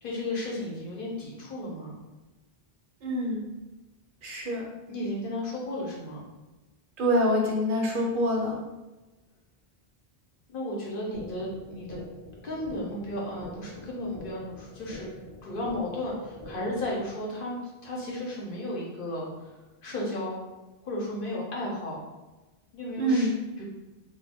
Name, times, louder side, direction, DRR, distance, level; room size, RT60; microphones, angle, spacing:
voice 1, 0.0-2.0 4.9-6.3 10.5-12.0 12.4-15.1 15.4-20.4 20.8-22.0 22.7-23.3 23.6-23.7, left 1 dB, 60° left, -3 dB, 0.9 m, -34 dB
voice 2, 3.0-3.4 4.2-4.7 7.0-8.6 23.0-23.3, equal, 65° right, -1 dB, 0.7 m, -25 dB
sound 1, 11.1-17.1, left 1 dB, 20° left, 0.4 m, -45 dB
2.3 x 2.2 x 3.4 m, 1.1 s
omnidirectional pair, 1.0 m